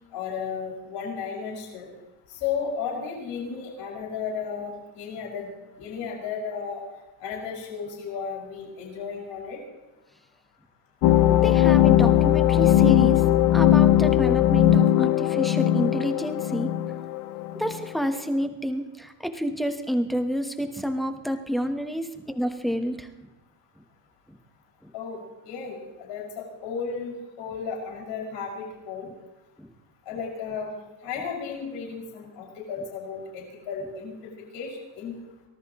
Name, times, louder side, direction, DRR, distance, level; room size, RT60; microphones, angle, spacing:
voice 1, 0.1-1.9 2.4-5.5 5.8-6.8 7.2-9.6 24.9-29.1 30.1-30.7 31.0-34.1 34.5-35.1, left 6 dB, 60° left, -2 dB, 6.2 m, -34 dB
sound 1, 11.0-17.8, left 12 dB, 40° left, 0.6 m, -19 dB
voice 2, 11.3-13.2 13.5-16.7 17.5-23.1 24.8-24.9 29.6-29.7, equal, ahead, 6 dB, 1.1 m, -29 dB
25.0 x 18.5 x 3.1 m, 1.1 s
cardioid pair, 165°, 48 cm